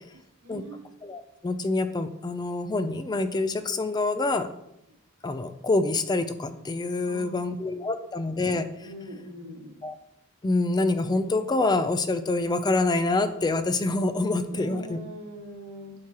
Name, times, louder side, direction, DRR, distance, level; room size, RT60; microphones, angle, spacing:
voice 1, 0.4-0.9 4.9-5.0 7.0-7.7 8.0-8.1 8.8-9.8 14.5-15.9, right 1 dB, 90° right, -1 dB, 1.7 m, -42 dB
voice 2, 1.0-4.5 5.2-8.7 9.8-9.9 10.4-15.0, left 2 dB, 20° left, 10 dB, 0.4 m, -26 dB
9.5 x 4.7 x 2.9 m, 0.79 s
head